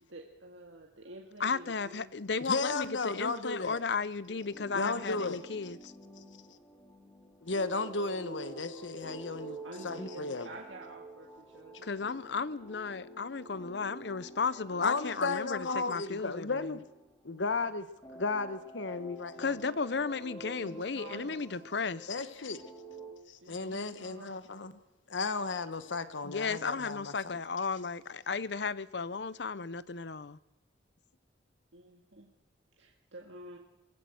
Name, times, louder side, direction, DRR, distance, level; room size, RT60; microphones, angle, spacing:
voice 1, 0.1-2.1 8.4-8.7 9.6-12.2 20.4-21.5 23.4-24.4 31.7-32.3 32.8-33.6, right 2 dB, 80° right, 1.9 m, -50 dB
voice 2, 1.4-5.9 11.8-16.7 19.4-22.1 26.2-30.4, left 5 dB, 65° left, 0.7 m, -34 dB
voice 3, 2.4-3.8 4.7-5.4 7.4-9.6 9.8-10.5 14.8-16.8 17.2-17.9 18.1-19.5 22.1-22.6 23.3-24.7 25.1-27.4, left 3 dB, 80° left, 1.2 m, -34 dB
sound 1, 4.3-17.6 18.0-23.1, right 2 dB, 15° left, 2.8 m, -49 dB
23.5 x 15.5 x 8.0 m
head